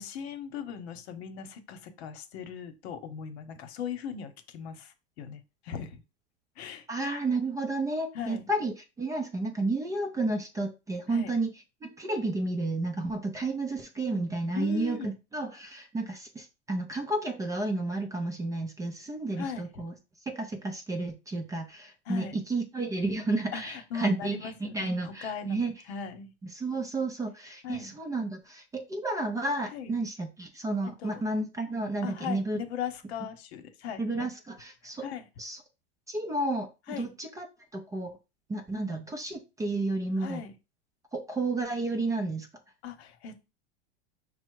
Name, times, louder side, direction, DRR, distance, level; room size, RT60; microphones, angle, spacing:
voice 1, 0.0-6.0 6.6-6.9 8.1-8.4 11.1-11.4 14.5-15.1 19.4-19.7 22.1-22.4 23.5-26.3 27.6-27.9 29.7-29.9 31.0-31.2 32.0-34.3 34.8-35.3 36.9-37.1 40.2-40.5 42.8-43.5, left 7 dB, 70° left, 8 dB, 1.0 m, -39 dB
voice 2, 6.9-11.5 11.8-19.9 20.3-25.7 26.5-32.6 34.0-35.1 35.4-35.6 36.1-37.5 37.7-38.1 38.5-40.4 41.1-42.5, right 2 dB, 10° right, 3 dB, 0.4 m, -31 dB
5.5 x 2.1 x 4.6 m, 0.28 s
supercardioid pair, 145°, 33 cm